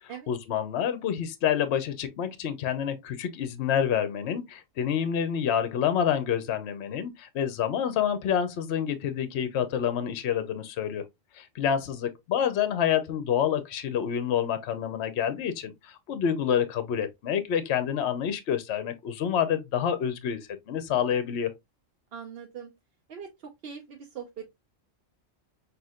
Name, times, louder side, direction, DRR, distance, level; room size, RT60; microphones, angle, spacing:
voice 1, 0.3-11.0 11.3-20.4 20.7-21.5, left 8 dB, 65° left, 0.9 m, -28 dB
voice 2, 22.1-22.7 23.1-24.5, right 7 dB, 55° right, 0.8 m, -41 dB
5.9 x 2.8 x 2.3 m
omnidirectional pair, 1.3 m